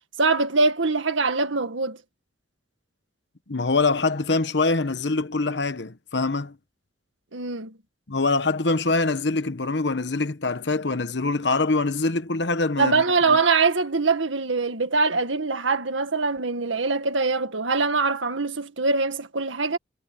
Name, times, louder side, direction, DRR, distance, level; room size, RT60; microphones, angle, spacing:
voice 1, 0.2-2.0 7.3-7.7 12.8-19.8, right 4 dB, 85° right, 1.9 m, -23 dB
voice 2, 3.5-6.6 8.1-13.4, left 3 dB, 65° left, 1.1 m, -24 dB
head